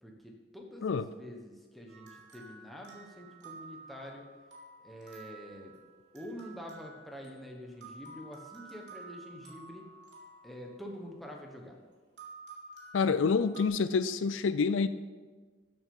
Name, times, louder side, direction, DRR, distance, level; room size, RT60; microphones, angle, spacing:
voice 1, 0.0-4.3 4.8-5.8 6.1-9.9 10.4-11.8, equal, ahead, -1 dB, 1.2 m, -46 dB
sound 1, 1.9-11.6 12.2-13.7, right 3 dB, 60° right, 3.2 m, -52 dB
voice 2, 12.9-14.9, left 5 dB, 90° left, 13 dB, 0.4 m, -27 dB
13.5 x 6.3 x 5.5 m, 1.4 s
head